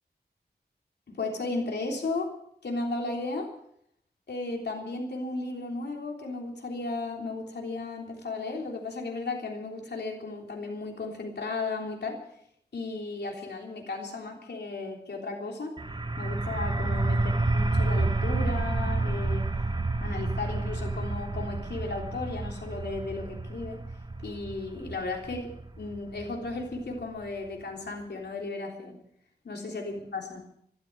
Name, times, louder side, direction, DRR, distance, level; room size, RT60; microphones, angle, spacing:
voice 1, 1.1-2.3 2.6-3.5 4.3-12.2 12.7-15.7 16.2-19.5 20.0-23.8 24.2-25.5 25.8-29.0 29.4-30.4, left 3 dB, 80° left, 1 dB, 3.4 m, -35 dB
sound 1, 15.8-27.2, right 2 dB, 25° right, 1.4 m, -30 dB
13.0 x 13.0 x 7.7 m, 0.70 s
wide cardioid pair, 70°, 17 cm